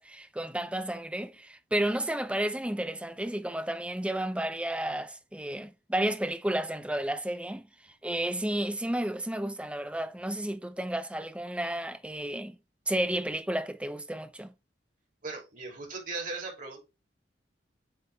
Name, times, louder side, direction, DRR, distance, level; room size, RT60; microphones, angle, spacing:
voice 1, 0.0-7.7 8.0-12.6 12.9-14.5, right 1 dB, 5° right, 0.6 m, -32 dB
voice 2, 15.2-16.8, right 3 dB, 50° right, 2.8 m, -38 dB
7.9 x 3.6 x 3.4 m
head